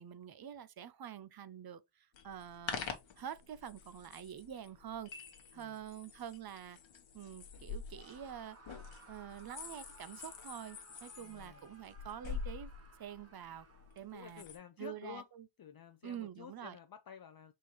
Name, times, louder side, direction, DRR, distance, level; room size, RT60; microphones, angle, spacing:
voice 1, 0.0-2.9 3.2-5.1 5.5-6.8 7.1-8.6 9.1-12.7 13.0-13.7 14.0-14.4 14.8-15.5 16.0-16.8, right 9 dB, 50° right, 0.5 m, -47 dB
sound 1, 2.1-14.6, left 5 dB, 70° left, 1.1 m, -47 dB
Screaming, 7.9-14.2, right 3 dB, 30° right, 1.0 m, -60 dB
voice 2, 11.2-11.7 14.1-15.3 15.6-17.5, left 8 dB, 50° left, 0.5 m, -51 dB
4.2 x 3.8 x 3.0 m
wide cardioid pair, 95°, 48 cm